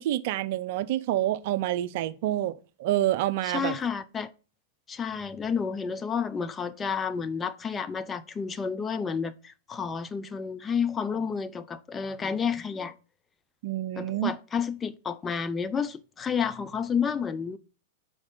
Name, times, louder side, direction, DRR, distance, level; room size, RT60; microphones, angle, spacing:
voice 1, 0.0-3.8 13.6-14.3, right 14 dB, 55° right, 0.5 m, -28 dB
voice 2, 3.4-4.3 4.9-12.9 14.0-17.6, left 6 dB, 20° left, 0.5 m, -30 dB
5.3 x 4.9 x 3.8 m
hypercardioid pair, 100°, 0 cm